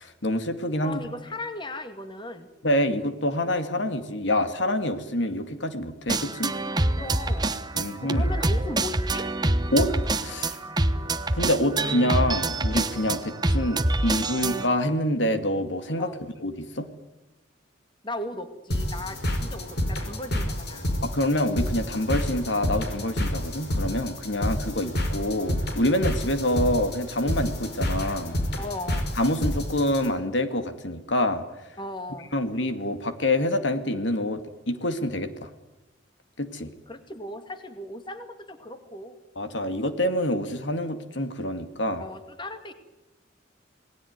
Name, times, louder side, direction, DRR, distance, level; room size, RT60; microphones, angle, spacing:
voice 1, 0.0-1.0 2.6-6.5 7.7-8.2 9.7-9.9 10.2-10.6 11.3-16.1 16.4-16.9 21.0-28.4 29.2-31.4 32.3-34.4 34.7-35.5 36.4-36.7 39.4-42.0, left 1 dB, 75° left, 9 dB, 2.3 m, -26 dB
voice 2, 0.8-2.5 7.0-7.5 7.8-9.3 16.0-16.2 18.0-20.9 28.6-29.1 31.8-32.3 36.9-39.2 42.0-42.7, left 1 dB, 25° left, 8 dB, 2.2 m, -37 dB
sound 1, 6.1-14.7, right 2 dB, 20° right, 1.2 m, -26 dB
sound 2, 18.7-30.1, left 1 dB, 60° left, 5.1 m, -29 dB
28.0 x 19.0 x 9.6 m, 0.99 s
head